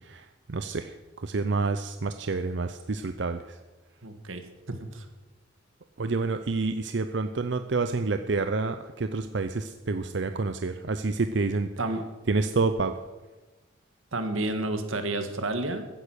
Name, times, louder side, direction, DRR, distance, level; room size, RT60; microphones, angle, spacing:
voice 1, 0.5-0.9 1.2-3.4 6.0-11.7 12.3-12.9, right 3 dB, 65° right, 9 dB, 0.6 m, -28 dB
voice 2, 4.0-4.4 4.7-5.1 11.8-12.0 14.1-15.9, right 2 dB, 90° right, 7 dB, 1.7 m, -30 dB
15.0 x 10.0 x 6.4 m, 1.2 s
head